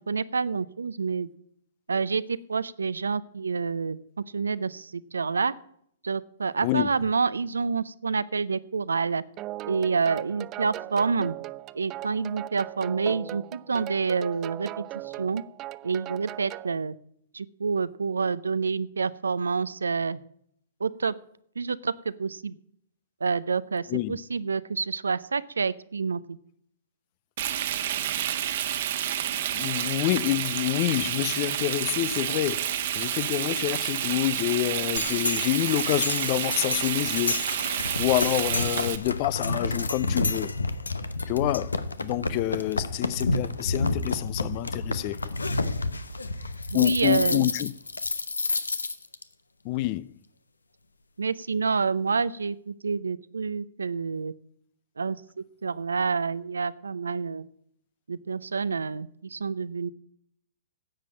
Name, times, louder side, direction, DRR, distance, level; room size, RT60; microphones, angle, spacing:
voice 1, 0.1-1.3 1.9-4.0 4.3-5.5 6.0-9.2 9.7-11.4 11.7-15.4 15.8-17.0 17.3-20.2 20.8-21.1 21.6-22.6 23.2-26.4 46.7-47.5 51.2-54.3 55.0-55.2 55.6-57.4 58.1-59.9, right 5 dB, 85° right, 0.6 m, -28 dB
sound 1, 9.4-16.7, right 16 dB, 30° right, 0.4 m, -38 dB
voice 2, 23.9-24.2 29.3-37.5 38.0-40.5 41.3-45.2 46.7-47.7 49.6-50.1, left 17 dB, 40° left, 0.5 m, -27 dB
Frying (food), 27.4-39.0, right 11 dB, 55° right, 1.2 m, -29 dB
sound 2, 35.0-49.2, left 3 dB, 90° left, 0.9 m, -30 dB
10.5 x 7.6 x 8.4 m
hypercardioid pair, 120°, 0 cm